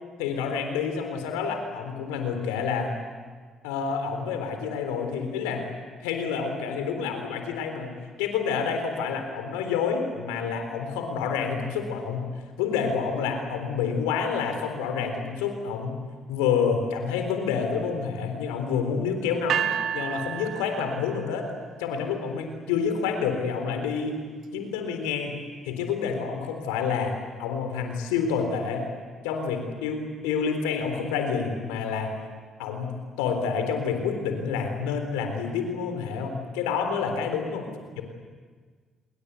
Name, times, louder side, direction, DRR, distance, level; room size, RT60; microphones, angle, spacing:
voice 1, 0.2-3.0 3.6-5.7 6.0-7.9 8.2-12.3 12.6-16.0 16.3-21.5 21.8-24.2 24.5-25.3 25.6-27.1 27.4-28.9 29.2-32.1 32.6-37.7, left 6 dB, 90° left, 6 dB, 3.7 m, -28 dB
sound 1, 19.5-21.6, right 9 dB, 70° right, 1.0 m, -30 dB
28.5 x 22.0 x 8.3 m, 1.5 s
hypercardioid pair, 55°, 0 cm